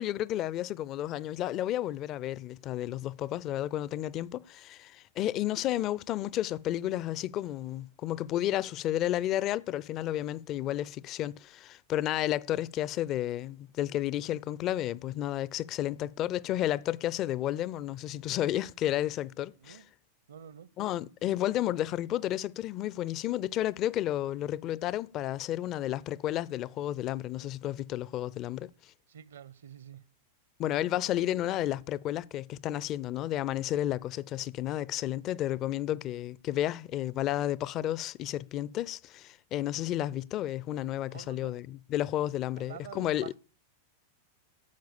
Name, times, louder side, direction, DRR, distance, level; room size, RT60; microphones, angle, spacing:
voice 1, 0.0-19.8 20.8-28.7 30.6-43.3, left 13 dB, 35° left, 0.5 m, -32 dB
voice 2, 20.3-20.7 29.1-30.0 41.1-41.6 42.5-43.4, right 9 dB, 65° right, 0.8 m, -47 dB
12.0 x 7.9 x 7.0 m
figure-of-eight pair, 90°, 0 cm